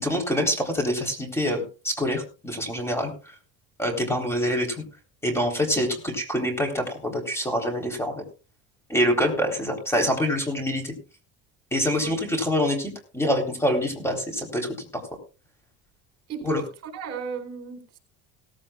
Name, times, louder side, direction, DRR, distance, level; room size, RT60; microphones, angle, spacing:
voice 1, 0.0-3.1 3.8-4.7 5.2-8.2 8.9-10.9 11.7-15.0 16.4-16.6, equal, 5° left, 4 dB, 3.9 m, -25 dB
voice 2, 16.3-16.6 16.9-18.0, right 6 dB, 50° right, 6 dB, 4.2 m, -35 dB
17.5 x 15.0 x 2.4 m, 0.33 s
cardioid pair, 135°, 33 cm